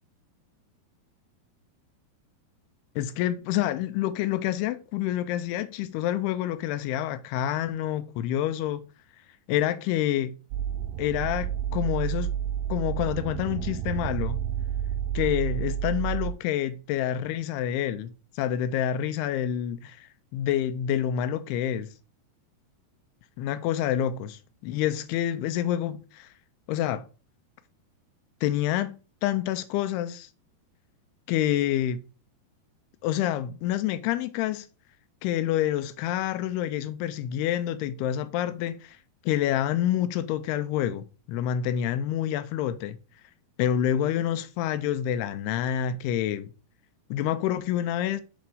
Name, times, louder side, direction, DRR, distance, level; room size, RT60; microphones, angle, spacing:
voice 1, 3.0-8.8 9.5-10.4 11.0-12.3 12.7-14.4 15.1-20.1 20.3-21.9 23.4-26.3 26.7-27.1 28.4-30.3 31.3-32.0 33.0-34.7 35.2-39.0 39.3-43.0 43.6-46.5 47.1-48.2, left 11 dB, 80° left, 2.6 m, -28 dB
sound 1, 10.5-16.3, right 10 dB, 85° right, 2.1 m, -30 dB
6.1 x 4.3 x 5.2 m
omnidirectional pair, 4.8 m